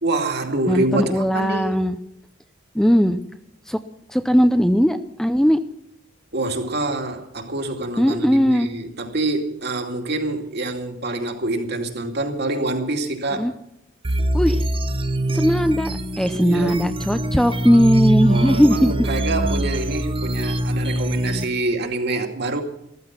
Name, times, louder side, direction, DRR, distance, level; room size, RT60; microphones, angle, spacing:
voice 1, 0.0-1.8 6.3-13.5 16.3-16.8 18.3-22.6, right 2 dB, 55° right, 2.4 m, -26 dB
voice 2, 0.7-2.0 2.7-3.2 3.7-3.8 4.1-5.6 8.0-8.7 13.3-13.5 14.3-14.6 15.3-18.9, equal, ahead, 0.6 m, -18 dB
sound 1, 14.0-21.4, right 1 dB, 25° right, 0.9 m, -23 dB
15.0 x 14.5 x 5.9 m
head